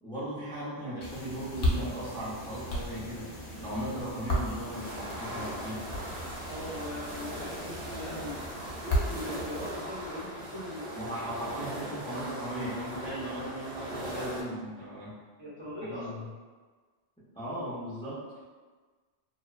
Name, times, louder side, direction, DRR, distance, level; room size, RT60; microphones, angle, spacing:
voice 1, 0.0-3.3 3.6-5.9 10.9-15.2 15.8-16.3 17.3-18.4, right 1 dB, 5° left, -11 dB, 0.4 m, -37 dB
sound 1, 1.0-9.7, equal, 60° left, 0.7 m, -35 dB
sound 2, 4.7-14.4, right 1 dB, 80° right, 0.9 m, -40 dB
voice 2, 6.5-8.4 8.8-10.8 15.4-16.2, left 1 dB, 30° right, -10 dB, 0.7 m, -40 dB
2.7 x 2.1 x 2.3 m, 1.4 s
omnidirectional pair, 1.1 m